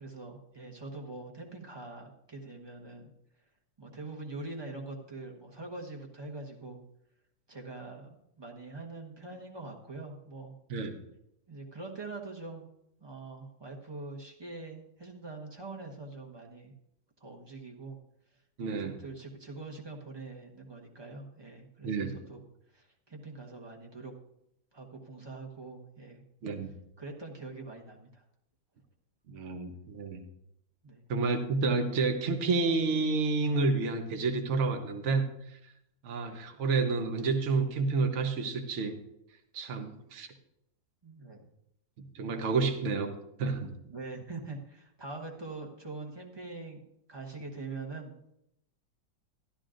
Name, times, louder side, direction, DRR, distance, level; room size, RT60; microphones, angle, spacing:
voice 1, 0.0-3.1 3.8-6.8 7.5-10.5 11.5-12.7 13.0-16.7 17.2-18.0 18.7-22.4 22.7-24.1 24.7-26.2 27.0-28.2 30.8-31.0 41.0-41.5 43.8-46.8 47.1-48.1, right 3 dB, 15° right, 1 dB, 1.0 m, -43 dB
voice 2, 18.6-19.0 21.8-22.2 26.4-26.7 29.3-30.2 31.1-35.7 36.0-39.0 39.5-40.3 42.0-43.7, right 4 dB, 45° right, 6 dB, 1.2 m, -30 dB
13.0 x 12.0 x 2.5 m, 0.79 s
omnidirectional pair, 2.0 m